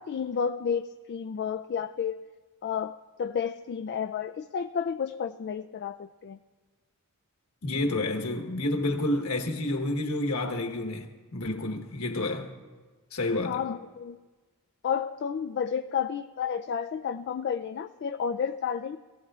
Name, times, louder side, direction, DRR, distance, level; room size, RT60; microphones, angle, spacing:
voice 1, 0.0-2.2 2.6-6.4 13.4-14.2 14.8-19.0, left 7 dB, 50° left, 0.3 m, -31 dB
voice 2, 7.6-12.5 13.1-13.6, left 2 dB, 70° left, 1.3 m, -29 dB
22.0 x 16.0 x 2.4 m
head